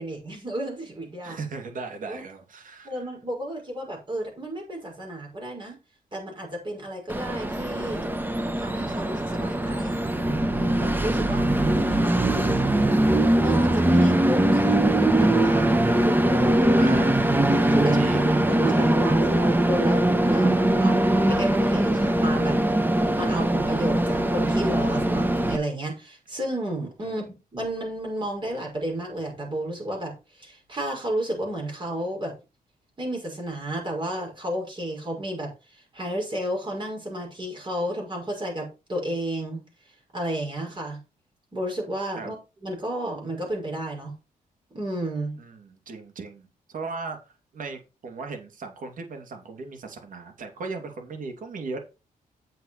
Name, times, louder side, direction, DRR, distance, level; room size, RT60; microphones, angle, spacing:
voice 1, 0.0-1.4 2.1-2.2 2.8-5.8 6.1-8.1 8.6-10.0 10.4-11.4 11.9-13.0 13.4-16.8 17.5-18.0 18.4-22.6 23.1-27.2 27.5-32.3 33.0-39.6 40.1-41.0 41.5-44.1 44.7-45.4, right 1 dB, 30° right, 5.9 m, -32 dB
voice 2, 1.2-3.1 11.8-12.1 16.8-17.3 17.9-19.1 27.0-27.2 42.2-42.3 45.4-51.9, right 4 dB, 65° right, 2.7 m, -37 dB
Train, 7.1-25.6, right 1 dB, 15° right, 1.1 m, -21 dB
8.1 x 7.9 x 4.3 m
cardioid pair, 115°, 15 cm